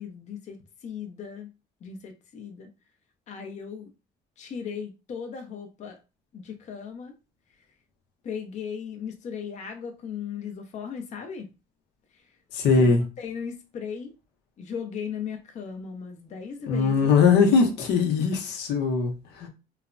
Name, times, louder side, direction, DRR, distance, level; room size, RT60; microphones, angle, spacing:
voice 1, 0.0-1.5 1.8-2.7 3.3-3.9 4.4-6.0 6.3-7.1 8.2-11.5 12.8-14.1 14.6-17.1, left 7 dB, 45° left, 0.5 m, -37 dB
voice 2, 12.5-13.0 16.7-19.5, left 5 dB, 85° left, 0.7 m, -21 dB
3.1 x 2.0 x 2.4 m
cardioid pair, 110°, 17 cm